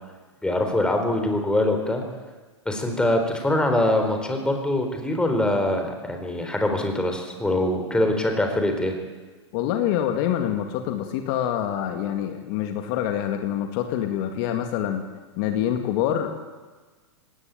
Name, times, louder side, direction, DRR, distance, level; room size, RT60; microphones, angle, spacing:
voice 1, 0.4-2.0 2.7-8.9, left 1 dB, 5° left, 4 dB, 4.0 m, -23 dB
voice 2, 9.5-15.1 15.4-16.3, left 10 dB, 50° left, 5 dB, 2.1 m, -26 dB
19.5 x 18.0 x 9.0 m, 1.3 s
hypercardioid pair, 115°, 15 cm